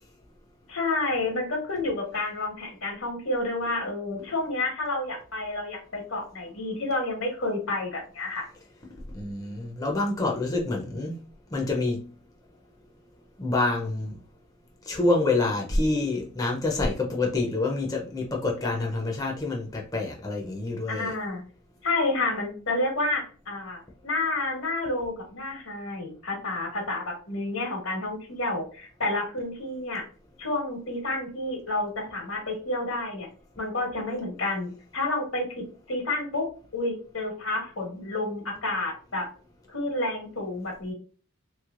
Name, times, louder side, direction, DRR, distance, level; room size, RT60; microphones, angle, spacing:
voice 1, 0.7-8.5 20.9-21.4 21.8-30.0 30.4-33.3 33.6-36.5 36.7-39.3 39.7-40.9, left 2 dB, 80° left, 1.3 m, -30 dB
voice 2, 9.1-11.2 11.5-12.1 13.4-14.2 14.9-21.1, left 2 dB, 20° left, 0.5 m, -27 dB
3.2 x 3.1 x 2.4 m
head